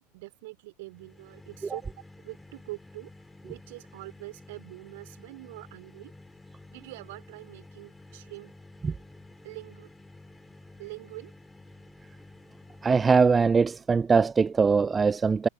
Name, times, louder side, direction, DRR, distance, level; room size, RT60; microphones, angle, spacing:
voice 1, 0.1-1.8 2.2-3.1 3.4-6.1 6.7-8.5 9.4-9.9 10.8-11.3, right 21 dB, 50° right, 4.8 m, -44 dB
sound 1, 0.8-13.4, left 2 dB, 5° left, 6.6 m, -51 dB
voice 2, 12.8-15.5, right 5 dB, 15° right, 0.3 m, -22 dB
figure-of-eight pair, 90°, 0 cm